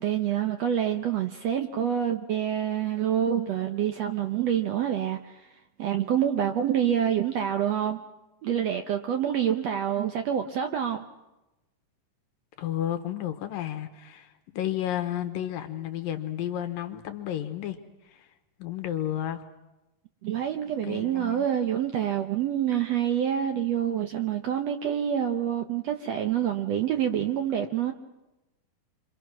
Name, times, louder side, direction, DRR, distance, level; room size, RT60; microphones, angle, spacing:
voice 1, 0.0-5.3 5.8-8.0 8.4-11.0 20.2-27.9, right 9 dB, 75° right, 5 dB, 1.5 m, -27 dB
voice 2, 12.6-17.8 18.1-18.3 18.6-19.4 20.8-21.5, left 11 dB, 75° left, 8 dB, 2.8 m, -32 dB
28.5 x 24.5 x 6.1 m, 1.0 s
omnidirectional pair, 4.1 m